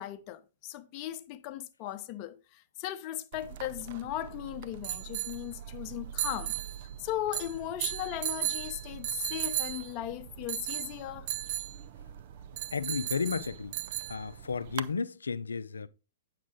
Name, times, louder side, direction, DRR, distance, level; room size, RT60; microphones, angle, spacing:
voice 1, 0.0-6.5 7.0-11.3, left 13 dB, 35° left, 0.8 m, -37 dB
sound 1, 3.3-14.9, right 12 dB, 50° right, 0.5 m, -37 dB
voice 2, 12.7-13.8 14.1-15.9, left 5 dB, 75° left, 0.5 m, -33 dB
8.6 x 6.6 x 3.8 m
figure-of-eight pair, 110°, 0 cm